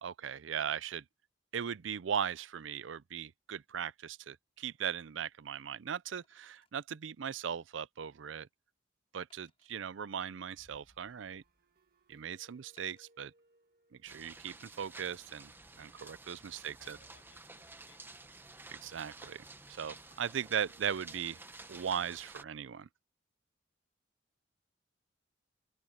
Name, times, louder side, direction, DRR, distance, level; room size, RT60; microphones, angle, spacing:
voice 1, 0.0-1.0 1.5-8.5 9.1-11.4 12.1-13.3 14.0-15.5 15.8-17.0 18.8-19.4 19.7-21.4 21.7-22.9, right 8 dB, 85° right, 0.5 m, -38 dB
Wood, 4.6-4.7 6.2-6.8 7.4-7.5 8.0-8.1 9.3-9.8 10.6-11.3 12.8-13.1 13.9-14.1, left 5 dB, 30° left, 5.7 m, -73 dB
sound 1, 4.7-5.9 6.2-6.3 6.6-6.7 10.5-16.2 18.9-21.9, right 1 dB, 50° right, 1.9 m, -70 dB
sound 2, 14.1-22.4, right 2 dB, 10° right, 1.0 m, -52 dB
voice 2, 16.5-18.4, left 5 dB, 70° left, 7.3 m, -66 dB
open air
head